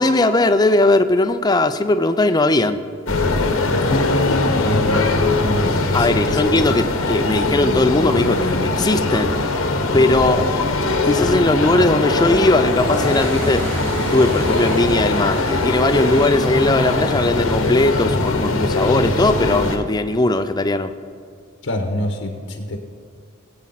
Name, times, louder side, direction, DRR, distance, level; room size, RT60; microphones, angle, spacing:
voice 1, 0.0-2.8 5.9-9.4 9.9-10.6 11.0-13.6 14.1-20.9, left 2 dB, 20° left, 9 dB, 0.5 m, -18 dB
sound 1, 3.1-19.8, left 2 dB, 85° left, 1.3 m, -21 dB
voice 2, 3.8-6.4 10.2-10.4 21.6-22.8, left 1 dB, 65° left, 3 dB, 1.1 m, -25 dB
sound 2, 12.2-19.6, right 1 dB, 65° right, 2.5 m, -30 dB
19.5 x 8.7 x 4.1 m, 2.3 s
head